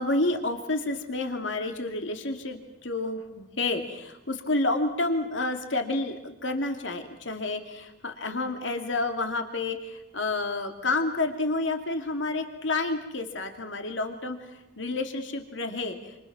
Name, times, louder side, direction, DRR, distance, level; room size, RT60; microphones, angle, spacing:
voice 1, 0.0-14.4 14.8-16.2, left 2 dB, 75° left, 5 dB, 2.6 m, -29 dB
28.5 x 27.5 x 6.2 m, 0.87 s
head